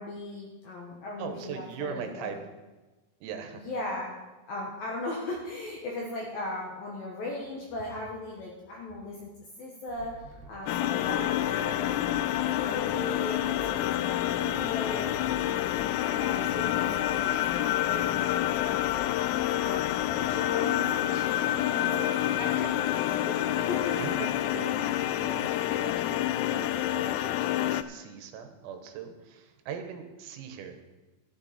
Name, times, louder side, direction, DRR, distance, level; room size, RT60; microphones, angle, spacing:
voice 1, 0.0-2.3 3.5-4.2 4.5-9.3 9.6-15.1 15.4-19.3 19.6-24.0, left 2 dB, 70° left, -2 dB, 2.3 m, -38 dB
voice 2, 1.2-2.4 3.2-3.6 24.0-30.9, right 7 dB, 85° right, 6 dB, 3.8 m, -40 dB
sound 1, 9.9-20.3, right 4 dB, 70° right, 3.6 m, -48 dB
sound 2, 10.7-27.8, left 13 dB, 85° left, 3.2 m, -28 dB
13.0 x 11.5 x 4.2 m, 1.2 s
omnidirectional pair, 5.9 m